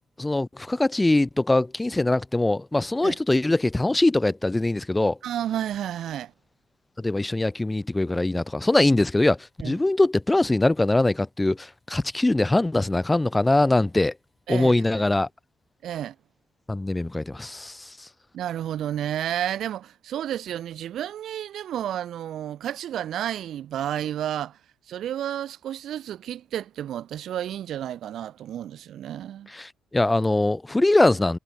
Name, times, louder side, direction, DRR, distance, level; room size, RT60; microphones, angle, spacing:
voice 1, 0.2-5.2 7.0-9.4 9.6-14.1 14.5-15.3 16.7-17.9 29.5-31.4, left 2 dB, 10° left, 0.4 m, -22 dB
voice 2, 5.2-6.3 9.6-9.7 14.5-15.0 15.8-16.1 18.3-24.6 24.9-29.5, right 11 dB, 60° right, 0.9 m, -31 dB
cardioid pair, 150°, 0 cm